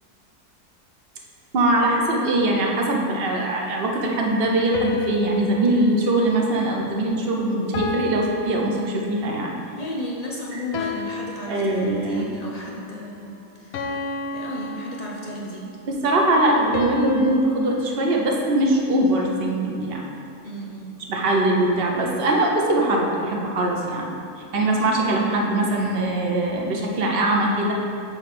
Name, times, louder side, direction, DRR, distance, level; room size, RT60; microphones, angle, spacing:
voice 1, 1.5-9.5 10.5-10.6 11.5-12.3 15.9-20.0 21.1-24.1 24.5-27.7, right 1 dB, 45° right, 0 dB, 0.9 m, -22 dB
sound 1, 4.7-7.2 7.7-9.5 10.7-12.3 13.7-15.6 16.7-19.1, left 4 dB, 70° left, 1.0 m, -33 dB
voice 2, 9.8-13.8 14.3-15.8 20.4-21.0, left 1 dB, 55° left, -3 dB, 0.4 m, -34 dB
8.1 x 3.2 x 5.9 m, 2.4 s
omnidirectional pair, 1.7 m